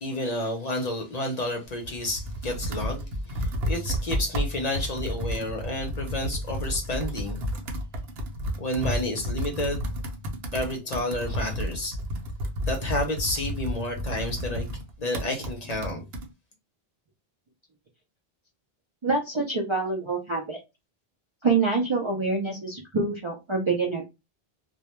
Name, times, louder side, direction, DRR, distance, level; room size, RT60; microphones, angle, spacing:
voice 1, 0.0-7.4 8.6-9.8 10.5-12.0 12.7-14.6 15.0-16.0, left 1 dB, 45° left, 0.6 m, -30 dB
Computer keyboard, 1.7-16.3, equal, 75° right, 0.9 m, -32 dB
voice 2, 19.0-20.6 21.4-24.0, right 4 dB, 45° right, 0.4 m, -26 dB
2.2 x 2.1 x 2.9 m
omnidirectional pair, 1.0 m